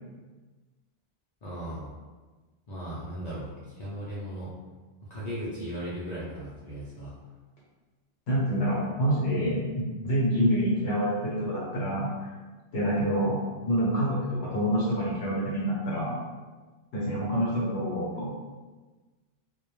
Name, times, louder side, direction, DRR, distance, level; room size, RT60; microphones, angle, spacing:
voice 1, 1.4-1.9 2.7-4.5 5.1-7.1, equal, 55° left, -9 dB, 0.5 m, -37 dB
voice 2, 8.3-12.3 12.7-13.4 13.6-16.1 16.9-18.3, equal, 70° left, -6 dB, 0.9 m, -27 dB
2.1 x 2.1 x 3.0 m, 1.3 s
omnidirectional pair, 1.2 m